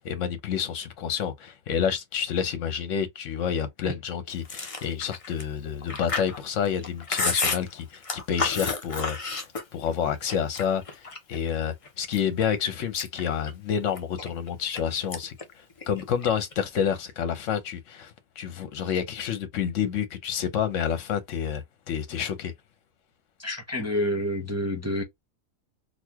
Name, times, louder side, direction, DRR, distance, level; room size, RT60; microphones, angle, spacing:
voice 1, 0.0-15.4 15.9-22.5, left 8 dB, 65° left, 1.2 m, -29 dB
Chewing mastication, 4.4-9.9 10.3-11.4 11.8-12.4 12.8-14.8 15.1-15.4 15.7-16.5, left 3 dB, 30° left, 0.7 m, -31 dB
voice 2, 23.4-25.0, left 1 dB, 15° right, 0.6 m, -28 dB
4.1 x 2.3 x 2.9 m
omnidirectional pair, 1.4 m